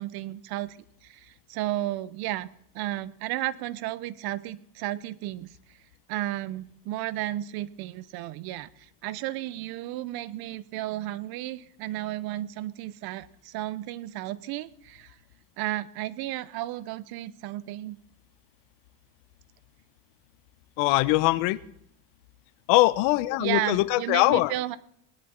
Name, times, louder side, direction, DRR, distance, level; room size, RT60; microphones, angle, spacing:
voice 1, 0.0-2.5 2.7-5.5 6.1-15.2 15.6-18.0 23.4-24.8, right 15 dB, 55° right, 17 dB, 0.8 m, -33 dB
voice 2, 20.8-21.6 22.7-24.5, left 19 dB, 75° left, 18 dB, 0.9 m, -22 dB
20.0 x 11.0 x 4.4 m, 0.70 s
cardioid pair, 145°, 44 cm